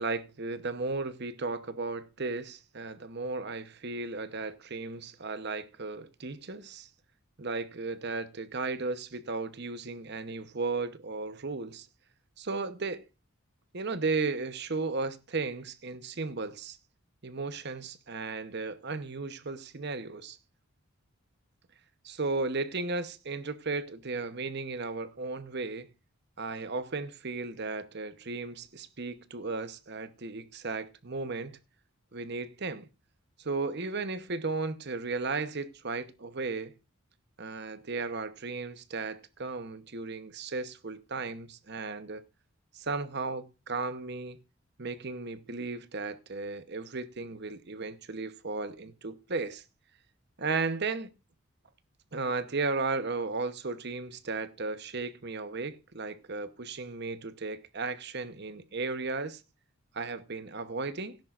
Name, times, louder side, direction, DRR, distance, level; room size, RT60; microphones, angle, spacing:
voice 1, 0.0-6.9 7.4-11.9 12.4-13.0 13.7-16.8 17.2-20.4 22.0-25.9 26.4-31.6 32.1-32.9 33.4-36.7 37.4-42.2 42.7-44.4 44.8-49.6 50.4-51.1 52.1-59.4 59.9-61.2, right 3 dB, 50° right, 1.0 m, -35 dB
17.5 x 10.5 x 2.5 m
head